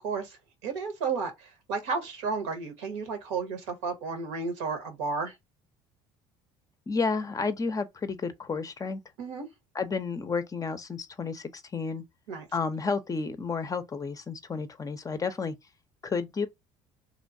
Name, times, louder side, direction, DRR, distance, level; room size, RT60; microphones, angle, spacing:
voice 1, 0.0-5.3 9.2-9.5 12.3-12.5, right 4 dB, 80° right, 1.0 m, -33 dB
voice 2, 6.9-9.0 9.7-12.0 12.5-15.5 16.0-16.5, left 4 dB, 25° left, 0.5 m, -31 dB
3.0 x 2.2 x 2.6 m
hypercardioid pair, 75°, 14 cm